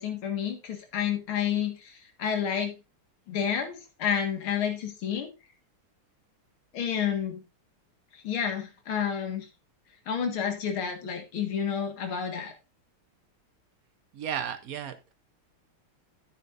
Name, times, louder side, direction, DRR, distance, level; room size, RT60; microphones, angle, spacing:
voice 1, 0.0-2.7 3.3-5.3 6.7-7.4 8.1-9.5 10.1-12.5, left 8 dB, 70° left, 5 dB, 2.6 m, -30 dB
voice 2, 14.1-15.1, right 8 dB, 70° right, 10 dB, 0.8 m, -34 dB
10.0 x 9.8 x 2.6 m, 0.26 s
omnidirectional pair, 2.4 m